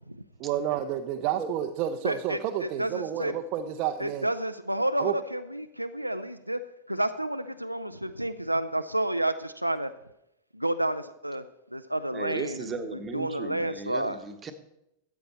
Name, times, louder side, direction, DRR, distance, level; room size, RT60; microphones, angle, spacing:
voice 1, 0.4-4.3 5.0-5.1, right 10 dB, 40° right, 5 dB, 0.6 m, -30 dB
voice 2, 2.0-3.3 4.0-6.6 6.9-9.9 10.5-11.4 11.7-12.8 13.1-14.2, right 1 dB, 90° right, 9 dB, 0.4 m, -30 dB
voice 3, 12.1-14.5, right 4 dB, 20° right, 6 dB, 1.1 m, -36 dB
13.0 x 8.3 x 4.2 m, 0.84 s
figure-of-eight pair, 90°, 0 cm